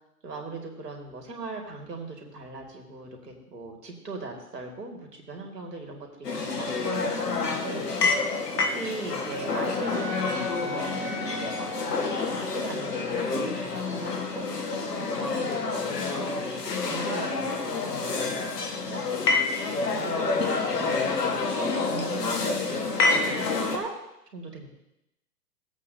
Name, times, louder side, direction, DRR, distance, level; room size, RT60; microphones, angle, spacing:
voice 1, 0.2-8.2 8.7-11.8 12.2-19.4 19.9-21.4 21.9-23.9 24.3-24.7, right 3 dB, 90° right, 1 dB, 2.4 m, -40 dB
sound 1, 6.2-23.8, left 3 dB, 85° left, 1.7 m, -28 dB
Wind instrument woodwind instrument, 8.7-12.9, right 1 dB, 40° right, 2.8 m, -40 dB
16.5 x 8.1 x 2.8 m, 0.86 s
hypercardioid pair, 135°, 47 cm